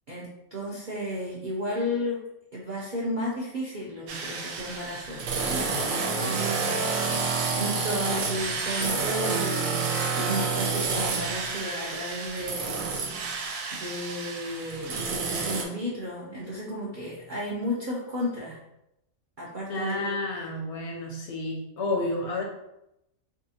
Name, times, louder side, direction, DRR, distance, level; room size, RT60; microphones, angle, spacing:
voice 1, 0.1-2.2 2.5-12.9 13.4-18.6 19.4-20.2, equal, 60° right, -5 dB, 0.5 m, -33 dB
sound 1, 4.1-15.6, right 4 dB, 75° right, 1.0 m, -29 dB
voice 2, 19.7-22.4, left 2 dB, 65° left, 0 dB, 0.8 m, -30 dB
3.5 x 2.7 x 2.7 m, 0.85 s
omnidirectional pair, 1.5 m